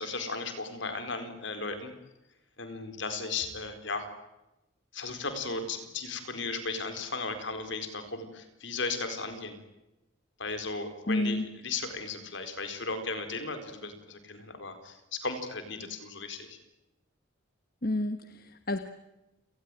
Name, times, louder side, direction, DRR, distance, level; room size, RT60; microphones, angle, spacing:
voice 1, 0.0-1.9 2.6-4.1 4.9-9.6 10.4-16.6, left 3 dB, 65° left, 9 dB, 4.3 m, -36 dB
voice 2, 11.1-11.5 17.8-18.8, left 1 dB, 45° left, 9 dB, 1.3 m, -30 dB
29.5 x 19.5 x 9.1 m, 0.98 s
head